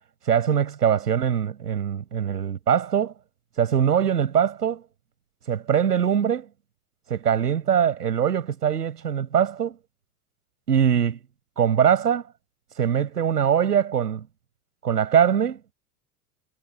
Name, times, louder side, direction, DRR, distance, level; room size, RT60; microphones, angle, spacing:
voice 1, 0.3-3.1 3.6-4.8 5.5-6.5 7.1-9.8 10.7-11.2 11.6-12.2 12.8-14.3 14.8-15.6, right 8 dB, 85° right, 7.1 m, -22 dB
hypercardioid pair, 80°, 46 cm